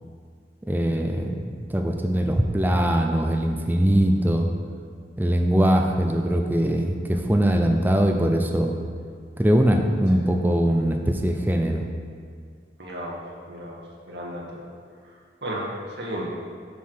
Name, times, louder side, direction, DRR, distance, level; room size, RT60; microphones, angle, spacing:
voice 1, 0.7-4.5 5.2-8.7 9.4-11.8, equal, 10° right, 3 dB, 0.4 m, -21 dB
voice 2, 12.8-13.2 13.5-13.8 14.1-14.6 15.4-15.7 16.0-16.2, right 1 dB, 75° right, -3 dB, 1.5 m, -33 dB
6.9 x 4.6 x 6.4 m, 2.1 s
head